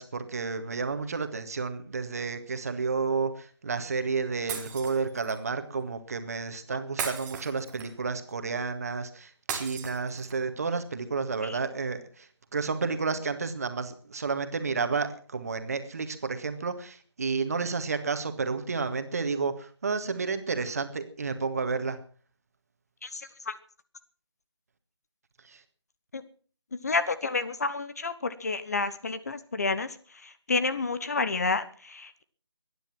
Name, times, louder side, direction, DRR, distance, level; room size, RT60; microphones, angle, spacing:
voice 1, 0.0-22.0 25.4-25.6, right 4 dB, 35° right, 8 dB, 1.8 m, -31 dB
Shatter, 4.5-5.4 7.0-8.1 9.5-10.5, right 7 dB, 10° right, 1.5 m, -36 dB
voice 2, 23.0-23.6 26.1-26.2 26.8-29.9 30.5-32.2, left 3 dB, 35° left, 13 dB, 1.0 m, -30 dB
21.5 x 10.5 x 6.1 m, 0.43 s
figure-of-eight pair, 160°, 14 cm